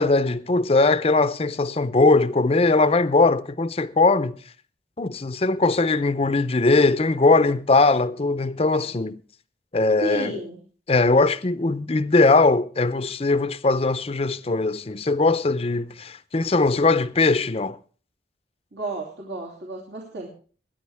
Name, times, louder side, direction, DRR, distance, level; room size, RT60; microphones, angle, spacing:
voice 1, 0.0-4.4 5.0-9.2 9.7-10.4 10.9-17.8, left 3 dB, 35° left, 0.6 m, -20 dB
voice 2, 10.0-10.6 18.7-20.3, right 2 dB, 70° right, 2.7 m, -32 dB
22.0 x 10.0 x 3.4 m
head